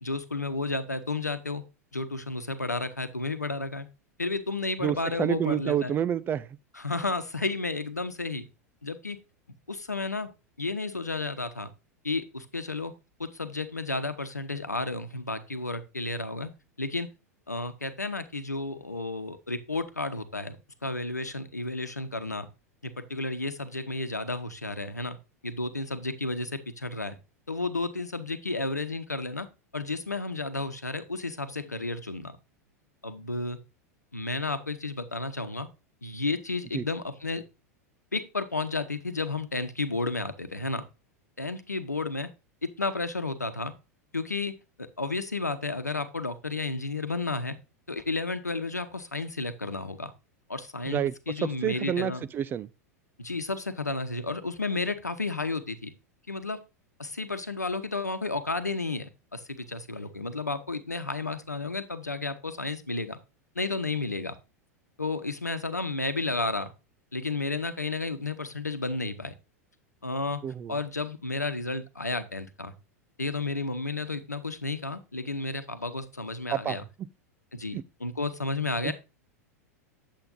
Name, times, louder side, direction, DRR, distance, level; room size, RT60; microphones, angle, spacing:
voice 1, 0.0-1.6 1.9-3.9 4.2-6.0 6.7-8.4 8.8-9.2 9.7-10.3 10.6-11.7 12.0-12.9 13.2-16.5 16.8-17.1 17.5-20.6 20.8-22.5 22.8-25.2 25.4-27.2 27.5-29.5 29.7-32.4 33.0-33.6 34.1-35.7 36.0-37.4 38.1-40.8 41.4-42.3 42.6-43.7 44.1-47.6 47.9-50.1 50.5-52.2 53.2-55.9 56.3-56.6 57.0-63.2 63.5-64.4 65.0-66.7 67.1-69.3 70.0-70.4 70.7-72.7 73.2-76.8 77.5-78.9, left 3 dB, 85° left, 1.0 m, -32 dB
voice 2, 4.8-6.5 36.7-36.8 50.9-51.1 51.6-52.7 70.4-70.8 76.5-76.8 77.7-77.8 78.8-78.9, right 10 dB, 25° right, 0.4 m, -28 dB
8.9 x 7.5 x 2.5 m
figure-of-eight pair, 90°, 9 cm